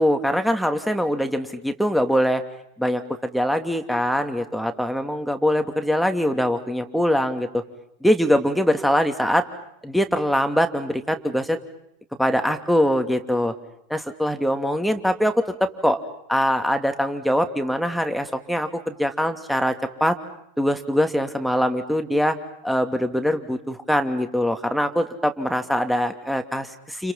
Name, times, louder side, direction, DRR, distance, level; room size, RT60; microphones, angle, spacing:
voice 1, 0.0-2.4 2.8-7.5 8.0-9.4 9.8-11.6 12.2-13.5 13.9-15.3 15.6-16.0 16.3-19.7 20.0-20.2 20.6-22.4 22.6-27.1, equal, ahead, 6 dB, 2.8 m, -22 dB
30.0 x 30.0 x 5.7 m, 0.75 s
figure-of-eight pair, 85°, 0 cm